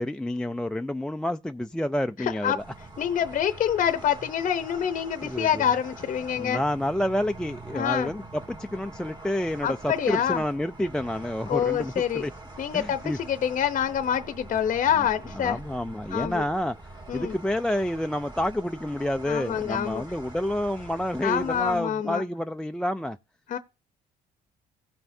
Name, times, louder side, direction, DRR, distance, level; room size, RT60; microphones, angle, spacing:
voice 1, 0.0-2.6 5.2-5.7 6.4-8.2 8.5-12.3 12.7-13.2 15.0-15.1 15.3-16.8 17.1-23.2, left 1 dB, 5° left, 0.3 m, -29 dB
voice 2, 2.2-2.6 3.0-6.6 7.7-8.1 9.6-10.4 11.5-12.3 12.6-15.6 16.1-16.5 17.1-17.4 19.3-20.0 21.2-22.2 23.5-23.6, left 9 dB, 50° left, 0.7 m, -26 dB
sound 1, 2.6-21.8, right 2 dB, 25° right, 2.1 m, -44 dB
17.0 x 5.7 x 2.7 m
cardioid pair, 110°, 17 cm